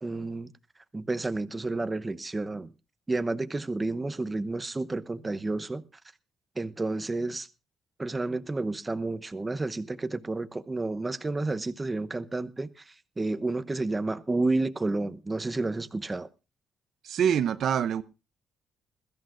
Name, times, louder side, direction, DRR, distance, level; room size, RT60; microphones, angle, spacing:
voice 1, 0.0-0.5 0.9-2.7 3.1-5.8 6.6-7.5 8.0-16.3, right 2 dB, 20° right, 0.9 m, -31 dB
voice 2, 17.0-18.0, right 8 dB, 70° right, 0.7 m, -25 dB
21.5 x 14.0 x 2.5 m
cardioid pair, 90°, 0 cm